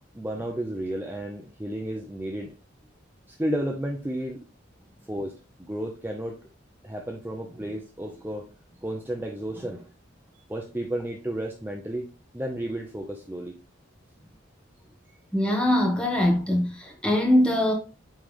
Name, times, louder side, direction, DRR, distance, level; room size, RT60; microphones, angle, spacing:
voice 1, 0.1-2.5 3.4-4.4 5.1-5.3 5.6-6.4 6.8-8.5 8.8-9.9 10.3-12.1 12.3-13.6, right 1 dB, 10° right, 0.6 m, -32 dB
voice 2, 15.3-17.7, left 1 dB, 5° left, 1.1 m, -22 dB
9.0 x 3.3 x 3.2 m
head